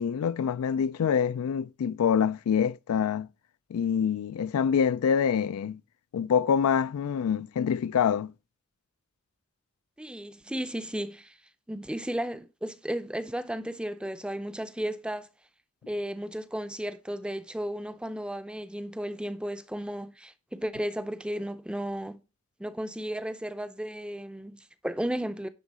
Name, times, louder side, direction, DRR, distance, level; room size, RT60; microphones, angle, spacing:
voice 1, 0.0-3.3 3.7-5.8 6.1-8.3, left 7 dB, 85° left, 0.3 m, -26 dB
voice 2, 10.0-11.4 11.7-15.3 15.9-22.2 22.6-25.5, equal, 5° right, 0.5 m, -34 dB
11.0 x 3.7 x 5.3 m
head